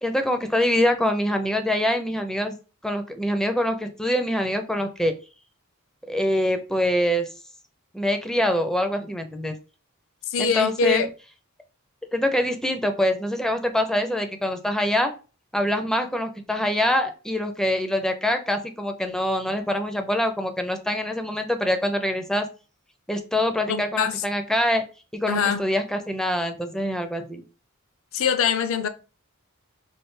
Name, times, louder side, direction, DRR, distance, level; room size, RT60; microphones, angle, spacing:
voice 1, 0.0-2.5 2.8-5.1 6.1-7.3 7.9-9.5 10.4-11.0 12.1-15.1 15.5-22.5 23.1-24.8 25.1-27.4, left 1 dB, 5° left, 0.4 m, -24 dB
voice 2, 10.3-11.1 23.7-24.2 25.3-25.6 28.1-28.9, left 6 dB, 65° left, 0.4 m, -23 dB
3.2 x 2.5 x 3.1 m
head